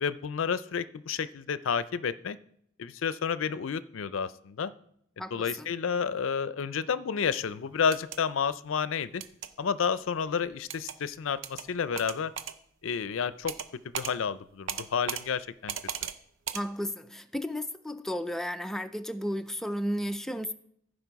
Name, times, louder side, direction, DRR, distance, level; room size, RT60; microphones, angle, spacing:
voice 1, 0.0-2.4 2.8-4.7 5.3-9.2 9.6-12.3 12.8-13.5 13.8-15.7, left 6 dB, 75° left, 15 dB, 0.5 m, -30 dB
voice 2, 5.2-5.7 16.5-20.5, equal, ahead, 8 dB, 0.3 m, -33 dB
sound 1, 7.8-8.2 9.2-9.5 10.7-11.0 11.4-11.7 12.0-12.6 13.5-13.7 13.9-14.1 14.7-15.2 15.7-16.2 16.5-16.6, right 8 dB, 70° right, 0.6 m, -36 dB
15.0 x 5.2 x 4.6 m, 0.71 s
head